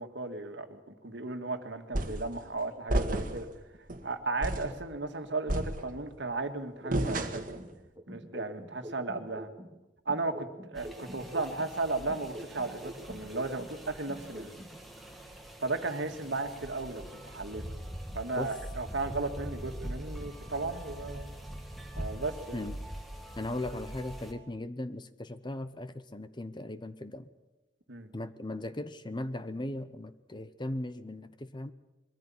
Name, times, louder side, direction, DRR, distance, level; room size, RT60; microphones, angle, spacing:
voice 1, 0.0-3.5 4.0-7.4 8.1-9.5 10.1-14.5 15.6-17.6 18.1-21.3 22.0-22.6 27.9-28.1, right 3 dB, 65° right, 6 dB, 2.0 m, -35 dB
sound 1, 1.9-2.3 2.9-3.5 3.9-4.0 4.4-4.8 5.5-6.2 6.9-7.6, right 1 dB, 45° right, 1.9 m, -31 dB
sound 2, 6.8-9.8 10.1-13.8 14.1-14.8, equal, 20° right, 1.5 m, -45 dB
sound 3, 10.7-24.3, equal, ahead, 2.2 m, -43 dB
voice 2, 23.4-27.3 28.1-31.7, left 1 dB, 25° left, 12 dB, 0.9 m, -38 dB
23.0 x 14.5 x 8.7 m, 1.0 s
head